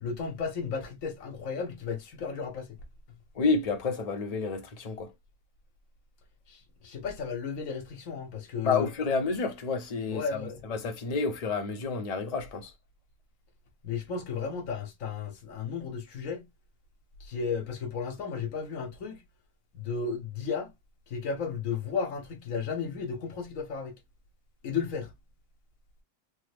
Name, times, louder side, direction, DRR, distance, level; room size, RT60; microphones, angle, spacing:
voice 1, 0.0-2.8 6.5-8.9 10.1-10.6 13.8-16.5 17.2-19.2 19.7-20.7 21.1-24.0 24.6-25.1, left 5 dB, 80° left, 1.2 m, -34 dB
voice 2, 3.3-5.1 8.6-12.7, left 4 dB, 40° left, 0.6 m, -30 dB
3.3 x 2.1 x 3.2 m
omnidirectional pair, 1.4 m